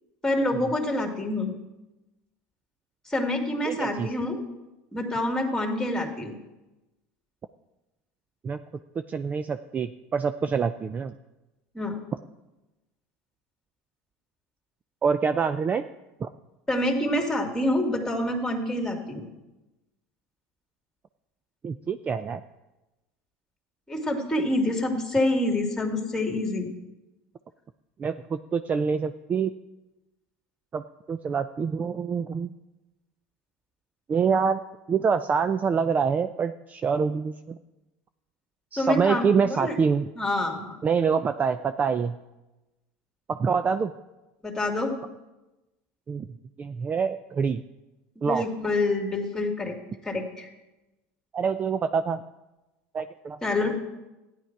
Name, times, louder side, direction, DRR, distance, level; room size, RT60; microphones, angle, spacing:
voice 1, 0.2-1.5 3.1-4.4 4.9-6.3 11.7-12.0 16.7-19.3 23.9-26.7 38.8-39.8 40.2-40.8 44.4-44.9 48.3-49.7 50.0-50.5 53.4-53.8, left 1 dB, 10° left, 3 dB, 2.2 m, -27 dB
voice 2, 3.6-4.1 8.4-8.6 9.1-11.1 15.0-15.8 16.2-16.3 21.6-22.4 28.0-29.5 30.7-32.6 34.1-34.6 34.9-37.6 38.7-40.1 40.8-42.2 43.3-43.9 46.1-46.2 46.6-47.6 48.2-48.4 51.3-52.2 52.9-53.4, right 6 dB, 25° right, 10 dB, 0.4 m, -26 dB
14.0 x 10.0 x 4.6 m, 1.0 s
supercardioid pair, 115°, 6 cm